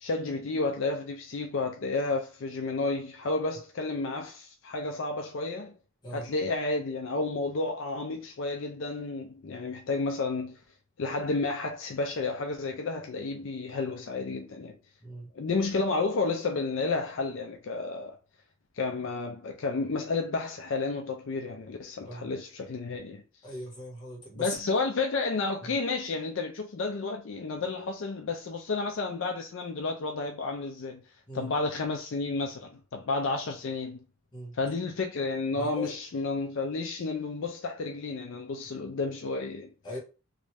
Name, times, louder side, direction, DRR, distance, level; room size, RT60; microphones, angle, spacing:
voice 1, 0.0-5.7 6.1-10.6 11.0-14.8 15.4-18.1 18.8-23.2 24.4-31.0 31.3-34.0 34.5-39.7, left 3 dB, 60° left, 0.4 m, -31 dB
voice 2, 23.4-24.5 25.6-25.7 31.3-31.5 34.3-34.5 35.5-35.9 39.8-40.0, equal, 20° left, 1.4 m, -39 dB
3.1 x 2.6 x 3.3 m
head